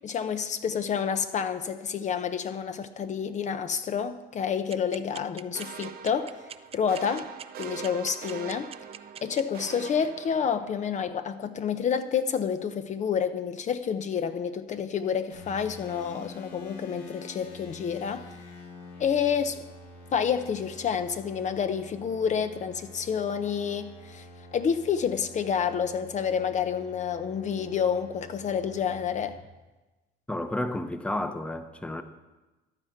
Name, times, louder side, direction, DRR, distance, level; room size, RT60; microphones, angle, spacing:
voice 1, 0.0-6.4 6.7-7.3 7.6-8.7 9.2-18.3 19.0-19.6 20.1-24.3 24.5-29.4, left 7 dB, 45° left, 9 dB, 0.7 m, -29 dB
sound 1, 4.7-9.4, right 8 dB, 35° right, 0.5 m, -41 dB
sound 2, 5.5-10.9, right 9 dB, 60° right, 0.9 m, -43 dB
sound 3, 15.3-29.4, left 1 dB, 80° left, 3.9 m, -47 dB
voice 2, 30.3-32.0, left 1 dB, 5° left, 9 dB, 0.9 m, -31 dB
15.0 x 10.5 x 4.5 m, 1.1 s
cardioid pair, 110°, 17 cm